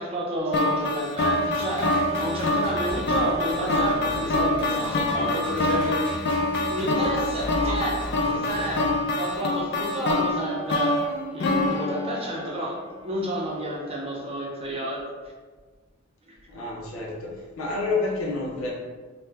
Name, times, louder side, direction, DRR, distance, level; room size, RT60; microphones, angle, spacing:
voice 1, 0.0-6.0 6.7-11.0 11.3-15.1 16.3-16.4, right 1 dB, 30° right, -3 dB, 0.6 m, -31 dB
sound 1, 0.5-12.7, left 1 dB, 55° left, 0.4 m, -26 dB
sound 2, 1.2-9.5, equal, 10° left, 0.7 m, -36 dB
voice 2, 16.5-18.7, left 3 dB, 85° left, -3 dB, 0.7 m, -29 dB
2.6 x 2.2 x 3.3 m, 1.4 s
head